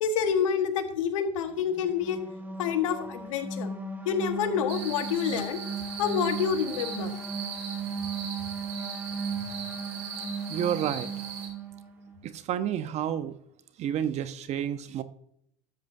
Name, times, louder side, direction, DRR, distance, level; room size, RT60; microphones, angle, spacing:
voice 1, 0.0-2.2 2.6-3.7 4.0-5.6 6.0-7.1, left 7 dB, 85° left, 7 dB, 1.3 m, -28 dB
Ominous Horn, 1.6-12.2, right 4 dB, 10° right, 1.8 m, -36 dB
sound 1, 4.7-11.5, right 6 dB, 70° right, 3.2 m, -40 dB
voice 2, 10.5-11.1 12.2-13.3 13.8-15.0, right 10 dB, 45° right, 12 dB, 0.8 m, -30 dB
13.0 x 7.8 x 2.6 m, 0.69 s
hypercardioid pair, 95°, 16 cm